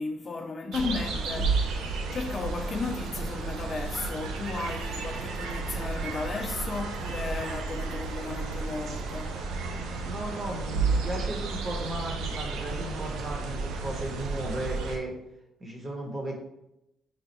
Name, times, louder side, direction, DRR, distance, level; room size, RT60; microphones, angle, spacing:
voice 1, 0.0-10.2, left 4 dB, 40° left, 0.3 m, -35 dB
sound 1, 0.7-15.0, right 4 dB, 85° right, 0.4 m, -32 dB
voice 2, 10.0-15.1 15.6-16.4, right 1 dB, 35° right, 1.1 m, -35 dB
3.2 x 2.3 x 4.0 m
cardioid pair, 90°, 0 cm